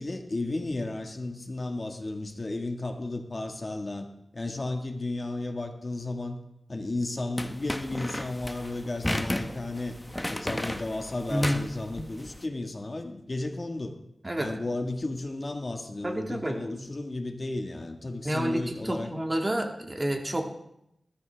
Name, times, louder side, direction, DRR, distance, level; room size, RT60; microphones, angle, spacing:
voice 1, 0.0-4.1 4.3-6.4 6.7-10.0 10.3-14.0 14.4-19.2, left 2 dB, 40° left, 4 dB, 1.7 m, -33 dB
sound 1, 7.4-12.4, left 1 dB, 15° left, 1.0 m, -34 dB
voice 2, 11.3-11.6 14.2-14.5 16.0-16.6 18.2-20.5, equal, 25° right, 3 dB, 1.9 m, -29 dB
20.5 x 13.5 x 3.5 m, 0.80 s
wide cardioid pair, 65°, 0 cm